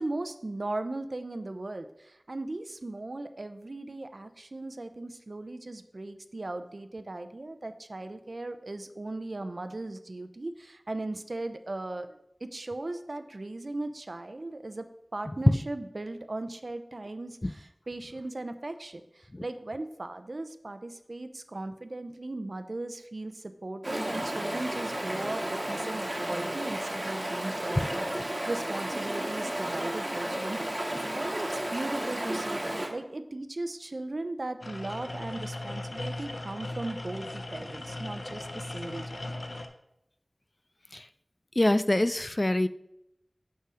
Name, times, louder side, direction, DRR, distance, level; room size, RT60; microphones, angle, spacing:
voice 1, 0.0-14.9 15.1-39.5, right 2 dB, 70° right, 9 dB, 0.6 m, -38 dB
Stream, 23.8-32.9, right 1 dB, 40° right, 1.8 m, -33 dB
sound 1, 34.6-39.7, left 2 dB, 75° left, 0.8 m, -38 dB
voice 2, 41.6-42.7, left 1 dB, 40° left, 13 dB, 0.4 m, -25 dB
7.6 x 5.6 x 4.9 m, 0.81 s
wide cardioid pair, 50°, 0 cm